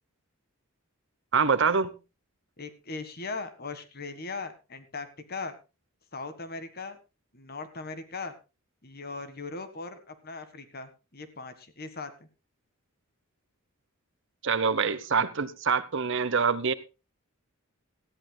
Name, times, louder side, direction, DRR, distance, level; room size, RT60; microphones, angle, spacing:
voice 1, 1.3-1.9 14.4-16.7, right 5 dB, 55° right, 15 dB, 0.9 m, -25 dB
voice 2, 2.6-5.5 6.1-7.0 7.3-8.3 8.8-12.3, left 3 dB, 45° left, 10 dB, 1.6 m, -39 dB
19.0 x 14.0 x 2.3 m, 0.29 s
head